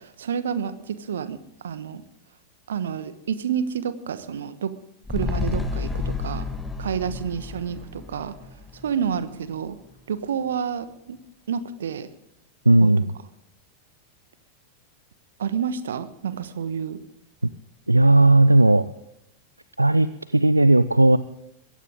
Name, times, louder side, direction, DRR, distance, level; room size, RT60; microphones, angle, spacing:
voice 1, 0.0-2.0 2.7-4.7 5.1-6.5 6.8-8.4 8.7-9.8 10.1-11.2 11.5-12.1 12.8-12.9 15.4-17.0, right 7 dB, 65° right, 13 dB, 1.2 m, -29 dB
sound 1, 5.0-9.6 9.9-10.0, left 4 dB, 5° left, 1.7 m, -31 dB
voice 2, 12.7-13.0 17.9-18.8 19.8-21.2, right 2 dB, 85° right, 16 dB, 0.4 m, -16 dB
22.0 x 16.0 x 3.7 m, 0.83 s
figure-of-eight pair, 90°, 0 cm